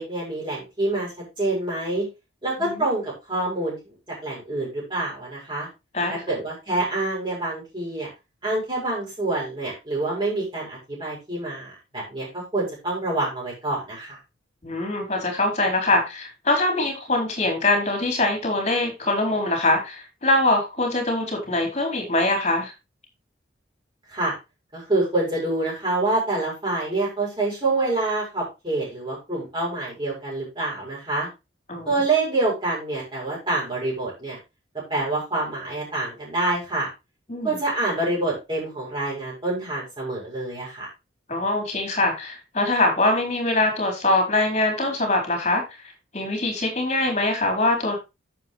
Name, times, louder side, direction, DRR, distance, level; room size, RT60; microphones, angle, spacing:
voice 1, 0.0-2.1 2.4-3.9 4.2-5.7 6.1-8.1 8.4-14.2 24.1-24.4 24.7-31.3 31.8-34.4 34.9-36.9 37.4-40.9, right 2 dB, 25° right, -6 dB, 6.8 m, -26 dB
voice 2, 14.6-22.7 31.7-31.9 37.3-37.6 41.3-45.6 46.1-48.0, left 2 dB, 35° left, 2 dB, 4.6 m, -23 dB
11.0 x 8.0 x 3.2 m, 0.25 s
head